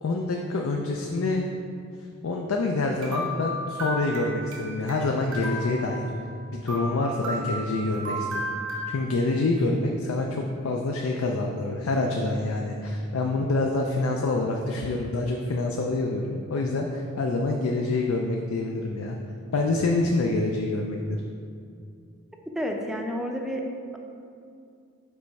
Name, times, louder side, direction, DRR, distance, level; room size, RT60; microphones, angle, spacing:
voice 1, 0.0-1.4 2.2-6.1 6.5-8.3 8.9-19.2 19.5-21.2, left 2 dB, 75° left, 1 dB, 0.4 m, -26 dB
sound 1, 3.0-5.0 5.3-6.4 6.7-9.0, equal, 75° right, 1.1 m, -33 dB
voice 2, 22.5-23.7, equal, ahead, 1 dB, 0.5 m, -30 dB
5.3 x 4.1 x 4.6 m, 2.4 s
head